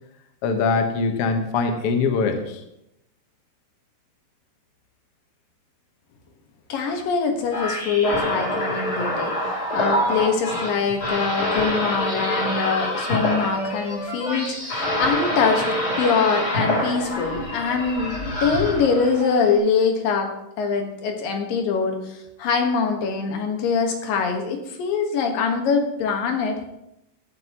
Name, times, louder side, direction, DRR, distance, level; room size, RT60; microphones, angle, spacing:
voice 1, 0.4-2.6, left 4 dB, 90° left, 5 dB, 1.3 m, -22 dB
voice 2, 6.7-9.3 9.7-15.6 16.0-18.1 18.4-26.7, left 5 dB, 65° left, 3 dB, 3.0 m, -23 dB
sound 1, 7.5-19.5, equal, 25° left, 2.8 m, -26 dB
17.0 x 11.0 x 3.0 m, 0.84 s
omnidirectional pair, 4.7 m